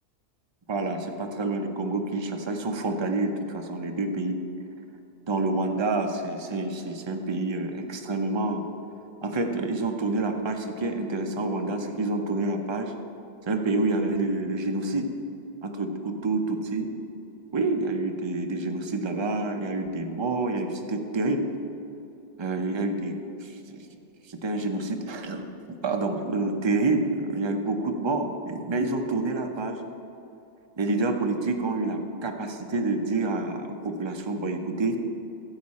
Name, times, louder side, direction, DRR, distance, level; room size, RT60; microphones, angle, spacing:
voice 1, 0.7-4.4 5.3-8.6 9.2-12.9 13.4-15.1 15.6-16.9 17.5-21.4 22.4-23.8 24.3-25.4 25.8-29.8 30.8-35.0, right 2 dB, 40° right, 4 dB, 0.4 m, -28 dB
13.5 x 8.0 x 4.2 m, 2.8 s
omnidirectional pair, 1.6 m